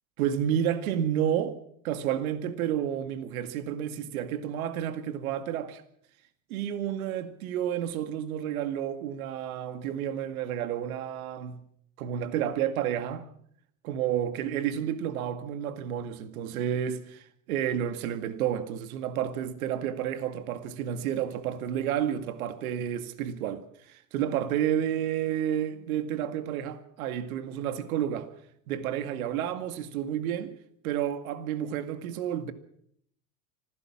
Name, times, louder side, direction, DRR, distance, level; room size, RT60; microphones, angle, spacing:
voice 1, 0.2-1.6 1.8-5.8 6.5-11.6 12.0-13.3 13.8-28.3 28.7-30.5 30.8-32.5, right 10 dB, 80° right, 2.2 m, -30 dB
26.0 x 16.5 x 7.4 m
hypercardioid pair, 100°, 43 cm